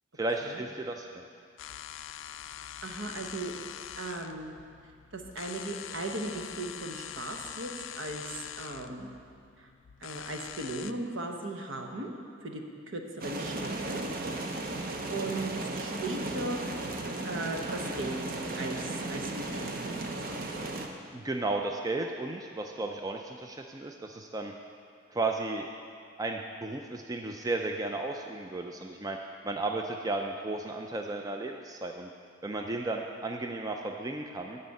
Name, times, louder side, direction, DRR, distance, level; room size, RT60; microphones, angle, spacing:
voice 1, 0.2-1.2 21.1-24.5 25.1-25.7 26.2-29.2 29.4-32.1 32.4-34.6, right 2 dB, 15° right, 3 dB, 0.3 m, -34 dB
sound 1, 1.6-10.9, left 10 dB, 65° left, 0.3 m, -44 dB
voice 2, 2.8-4.5 5.1-7.7 8.0-9.1 9.6-9.7 10.0-12.1 12.4-12.6 12.9-14.0 15.1-16.6 17.2-20.7, right 2 dB, 70° right, 3 dB, 1.0 m, -37 dB
sound 2, 13.2-20.9, right 2 dB, 45° right, 0.7 m, -35 dB
11.5 x 4.2 x 8.1 m, 2.3 s
head